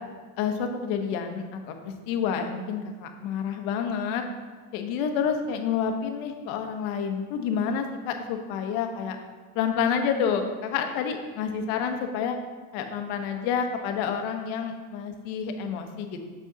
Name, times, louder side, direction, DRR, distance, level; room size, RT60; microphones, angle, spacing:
voice 1, 0.4-4.2 4.7-9.2 9.5-12.4 12.7-16.3, left 7 dB, 70° left, 5 dB, 1.1 m, -29 dB
7.0 x 5.0 x 3.9 m, 1.5 s
cardioid pair, 150°, 49 cm